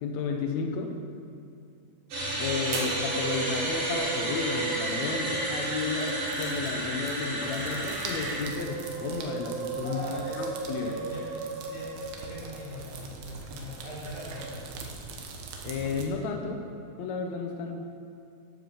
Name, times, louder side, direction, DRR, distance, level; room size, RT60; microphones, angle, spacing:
voice 1, 0.0-0.9 2.4-10.9 15.6-16.6 17.0-17.8, left 5 dB, 75° left, 3 dB, 1.7 m, -33 dB
sound 1, 2.1-8.4, right 1 dB, 50° right, 5.4 m, -31 dB
Musical instrument, 2.2-6.9 8.2-13.0 14.1-14.6, right 5 dB, 90° right, 1.4 m, -37 dB
sound 2, 2.6-16.0, right 4 dB, 75° right, 3.1 m, -43 dB
voice 2, 2.7-3.1 9.8-14.7, equal, 55° left, -6 dB, 5.0 m, -42 dB
11.5 x 10.5 x 7.0 m, 2.5 s
omnidirectional pair, 4.4 m